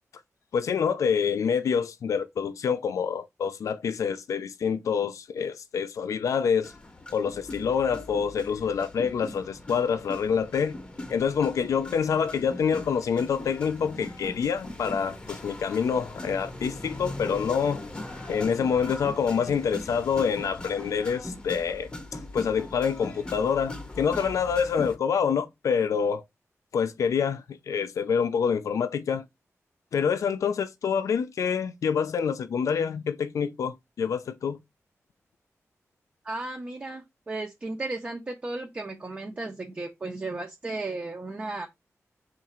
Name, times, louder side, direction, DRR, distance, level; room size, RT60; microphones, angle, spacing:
voice 1, 0.5-6.7 7.1-10.8 11.1-17.8 18.3-26.2 26.7-29.2 29.9-34.6, left 6 dB, 80° left, 0.4 m, -27 dB
sound 1, 6.6-25.0, left 2 dB, 20° left, 0.7 m, -40 dB
voice 2, 36.2-41.7, right 2 dB, 25° right, 0.5 m, -35 dB
3.6 x 2.4 x 4.2 m
wide cardioid pair, 155°, 5 cm